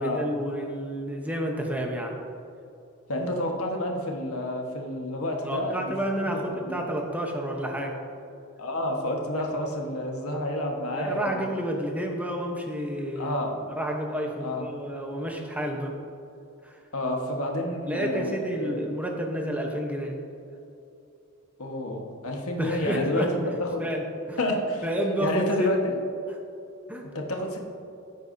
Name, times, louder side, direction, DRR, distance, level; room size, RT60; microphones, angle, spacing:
voice 1, 0.0-2.2 5.4-8.0 10.9-13.4 13.7-16.0 16.6-16.8 17.9-20.2 22.6-23.5 23.8-24.0 24.3-24.4 24.8-25.7 26.3-26.4 26.9-27.1, equal, 5° right, 1 dB, 0.9 m, -30 dB
voice 2, 3.1-6.8 8.6-11.5 13.2-13.6 14.4-14.7 16.9-18.8 21.6-23.9 24.4-24.8 25.2-25.8 27.1-27.6, left 1 dB, 90° left, 1 dB, 1.4 m, -30 dB
15.0 x 8.2 x 2.7 m, 2.6 s
head